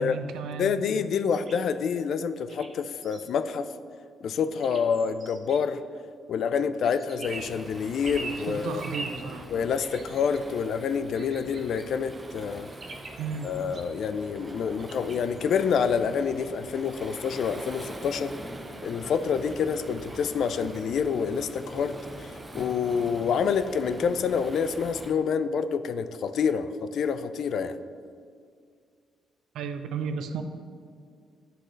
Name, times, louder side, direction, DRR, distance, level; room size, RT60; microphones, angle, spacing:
voice 1, 0.0-0.8 8.5-9.5 13.2-13.5 29.5-30.4, right 6 dB, 80° right, 8 dB, 0.5 m, -33 dB
voice 2, 0.6-3.7 4.2-5.8 6.3-8.8 9.5-12.7 13.4-18.3 18.8-27.8, left 6 dB, 70° left, 12 dB, 0.3 m, -27 dB
sound 1, 1.3-1.6 2.5-3.2 4.6-5.6 6.8-7.6 8.0-8.4 8.8-9.2 9.7-10.4 11.1-11.9 12.8-13.9 14.8-15.4, right 3 dB, 50° right, 0.9 m, -42 dB
Waves surf, 7.2-25.1, right 1 dB, 20° right, 0.7 m, -43 dB
10.0 x 3.8 x 3.2 m, 2.2 s
supercardioid pair, 65°, 0 cm